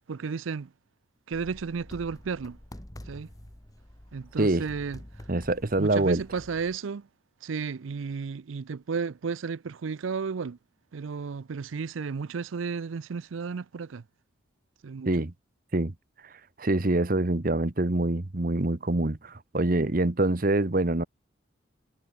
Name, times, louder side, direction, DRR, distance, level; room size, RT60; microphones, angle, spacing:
voice 1, 0.1-0.7 1.3-2.6 3.1-3.3 4.1-5.0 5.8-7.1 7.4-10.6 10.9-14.0 14.8-15.1, right 5 dB, 90° right, 0.5 m, -33 dB
sound 1, 1.3-6.8, left 1 dB, 20° left, 1.4 m, -47 dB
voice 2, 5.3-6.2 15.1-15.3 15.7-15.9 16.6-21.0, right 2 dB, 45° right, 1.1 m, -25 dB
head